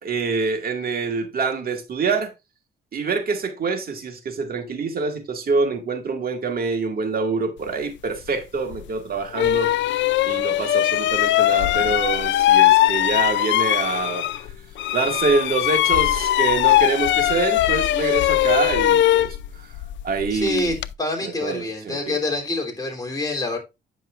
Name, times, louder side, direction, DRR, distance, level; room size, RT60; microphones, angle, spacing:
voice 1, 0.0-2.3 2.9-9.7 10.2-14.3 14.9-19.4 20.0-20.7 21.2-22.2, right 4 dB, 50° right, 2.0 m, -25 dB
sound 1, 8.7-8.8 9.3-14.5 14.8-20.9, left 13 dB, 70° left, 0.4 m, -20 dB
voice 2, 20.3-23.6, left 2 dB, 20° left, 3.2 m, -26 dB
9.3 x 6.1 x 2.5 m
cardioid pair, 90°, 20 cm